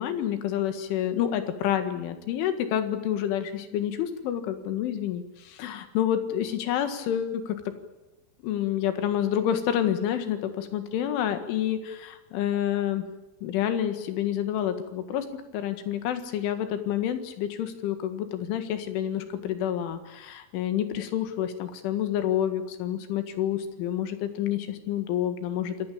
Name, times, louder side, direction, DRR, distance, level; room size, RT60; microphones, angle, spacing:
voice 1, 0.0-7.6 8.4-13.0 13.4-25.8, left 10 dB, 70° left, 9 dB, 4.1 m, -28 dB
27.5 x 19.0 x 8.7 m, 1.0 s
omnidirectional pair, 5.9 m